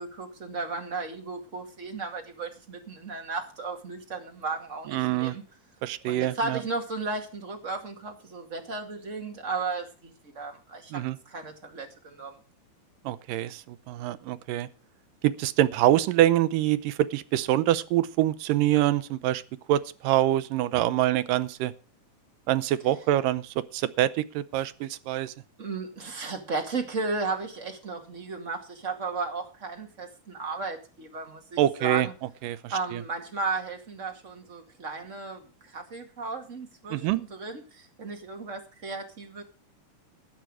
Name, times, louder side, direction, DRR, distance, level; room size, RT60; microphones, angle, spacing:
voice 1, 0.0-5.4 6.0-12.4 25.6-32.1 32.7-39.4, right 3 dB, 30° right, 1.6 m, -35 dB
voice 2, 4.9-5.4 5.8-6.6 10.9-11.2 13.1-14.7 15.2-19.4 19.7-21.7 22.5-25.3 31.6-32.1 32.4-33.0 36.9-37.2, right 13 dB, 75° right, 2.1 m, -25 dB
13.5 x 9.2 x 4.8 m
omnidirectional pair, 4.4 m